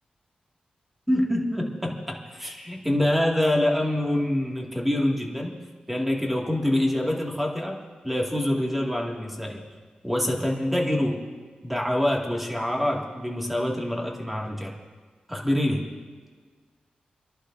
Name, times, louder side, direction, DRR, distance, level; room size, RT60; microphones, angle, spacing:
voice 1, 1.1-5.6 5.9-7.8 8.0-9.6 10.0-11.3 11.6-14.7 15.3-15.9, left 1 dB, 5° right, -1 dB, 2.2 m, -25 dB
28.5 x 11.5 x 2.7 m, 1.5 s
wide cardioid pair, 85°, 3 cm